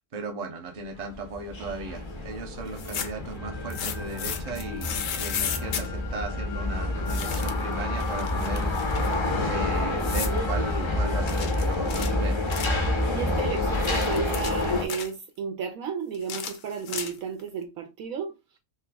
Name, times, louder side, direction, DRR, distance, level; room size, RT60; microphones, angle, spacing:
voice 1, 0.1-9.2 9.4-12.6, right 3 dB, 40° right, 0.6 m, -37 dB
sound 1, 1.0-14.9, left 2 dB, 35° left, 0.5 m, -28 dB
sound 2, 2.7-3.3 3.7-5.9 7.1-7.7 8.0-9.2 10.0-10.4 11.3-12.8 13.6-15.1 16.1-17.4, left 8 dB, 65° left, 1.0 m, -34 dB
sound 3, 3.4-12.5, left 6 dB, 85° left, 1.3 m, -43 dB
voice 2, 13.1-18.4, right 6 dB, 75° right, 1.0 m, -33 dB
3.2 x 2.9 x 3.4 m
omnidirectional pair, 1.6 m